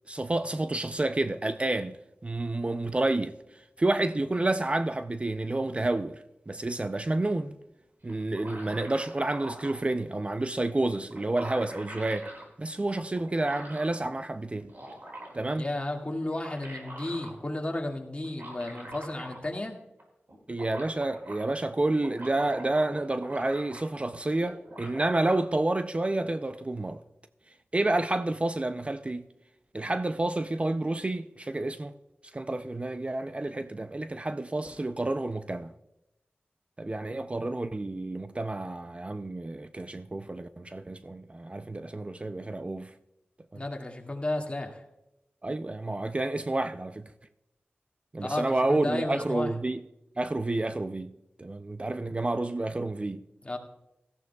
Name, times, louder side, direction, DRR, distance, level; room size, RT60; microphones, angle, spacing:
voice 1, 0.1-7.6 8.0-12.3 12.6-14.7 15.3-15.6 20.5-27.0 27.7-29.2 29.7-31.9 32.3-35.7 36.8-42.9 43.5-43.6 45.4-47.1 48.1-49.8 50.2-53.2, right 2 dB, 30° right, 0.5 m, -29 dB
sound 1, 8.1-9.8 10.7-10.8 11.1-12.4 13.1-13.9 14.5-15.5 16.2-17.3 18.2-19.7 20.0-20.1 20.3-21.4 21.9-24.0 24.3-25.4, right 1 dB, 60° right, 4.8 m, -44 dB
voice 2, 15.5-19.8 43.5-44.8 48.2-49.5 53.4-53.6, left 1 dB, 30° left, 2.1 m, -33 dB
17.5 x 14.0 x 2.3 m
wide cardioid pair, 55°, 4 cm